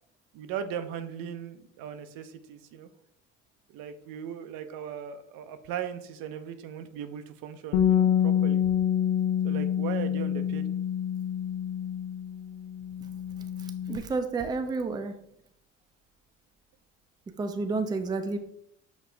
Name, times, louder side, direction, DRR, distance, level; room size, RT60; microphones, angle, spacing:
voice 1, 0.3-2.9 3.7-8.6 9.4-10.7, right 8 dB, 65° right, 9 dB, 0.6 m, -38 dB
Bass guitar, 7.7-14.0, left 9 dB, 80° left, 0.5 m, -27 dB
voice 2, 13.6-15.2 17.4-18.4, right 3 dB, 10° right, 7 dB, 0.4 m, -30 dB
6.1 x 2.4 x 3.3 m, 0.73 s
supercardioid pair, 80°, 36 cm